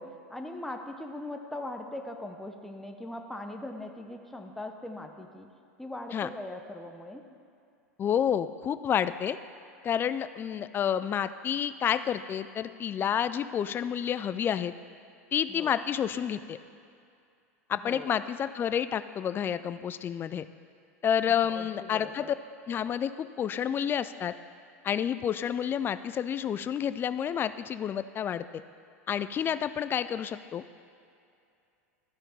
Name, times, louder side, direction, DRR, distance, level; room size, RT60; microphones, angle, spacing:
voice 1, 0.0-5.5 5.8-7.3 15.5-15.8 17.7-18.2 21.3-22.3, left 1 dB, 5° left, 3 dB, 0.7 m, -40 dB
voice 2, 8.0-9.4 9.8-14.7 15.3-16.6 17.7-20.4 21.0-22.2 22.7-24.3 24.8-28.5 29.1-30.6, left 9 dB, 25° left, 13 dB, 0.4 m, -29 dB
13.5 x 5.2 x 4.3 m, 2.5 s
hypercardioid pair, 100°, 8 cm